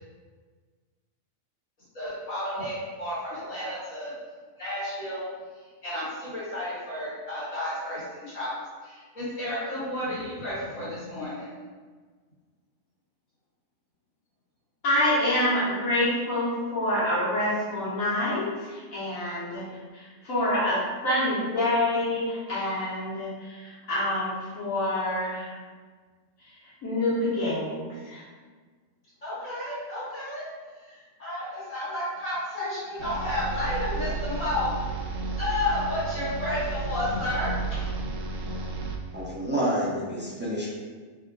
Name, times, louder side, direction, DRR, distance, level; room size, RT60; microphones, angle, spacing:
voice 1, 1.9-4.1 4.6-5.2 5.8-8.5 8.8-11.5 29.2-30.5 30.8-34.7 35.4-37.9, left 1 dB, 70° left, -10 dB, 2.0 m, -32 dB
voice 2, 14.8-19.7 19.9-25.5 26.8-28.2, left 1 dB, 85° left, -9 dB, 1.6 m, -27 dB
sound 1, 33.0-39.3, right 4 dB, 75° right, 0.9 m, -32 dB
voice 3, 39.1-40.7, right 1 dB, 10° right, -7 dB, 0.6 m, -28 dB
5.1 x 3.5 x 2.2 m, 1.5 s
omnidirectional pair, 1.4 m